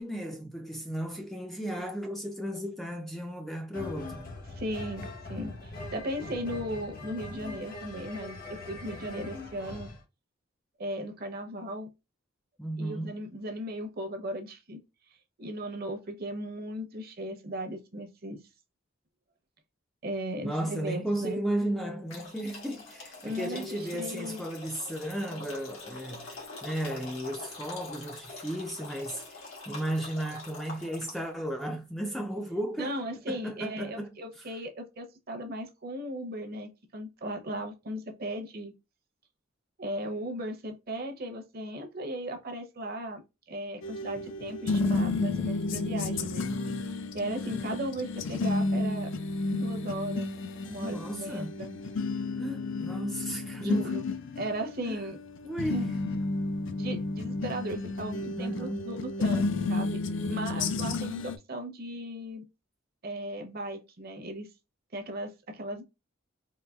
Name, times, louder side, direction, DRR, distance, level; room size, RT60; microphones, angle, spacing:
voice 1, 0.0-4.3 12.6-13.2 20.4-32.9 33.3-34.2 46.0-46.5 50.8-51.5 52.4-53.9 54.9-55.1 55.4-55.8 58.3-58.9 60.6-61.0, right 1 dB, ahead, 0.3 m, -34 dB
sound 1, 3.7-10.0, left 2 dB, 45° left, 0.8 m, -41 dB
voice 2, 4.5-9.9 10.8-11.9 12.8-14.8 15.4-18.4 20.0-21.4 23.2-24.4 32.8-38.7 39.8-43.2 43.5-46.5 46.8-49.1 49.5-50.3 50.7-51.7 53.6-54.0 54.4-55.2 55.7-55.9 56.8-60.0 60.3-62.4 63.0-64.5 64.9-65.8, equal, 50° right, 0.7 m, -37 dB
sound 2, 22.1-31.4, left 3 dB, 90° left, 1.6 m, -44 dB
sound 3, 43.8-61.4, left 3 dB, 65° left, 0.4 m, -32 dB
3.9 x 2.7 x 2.3 m
head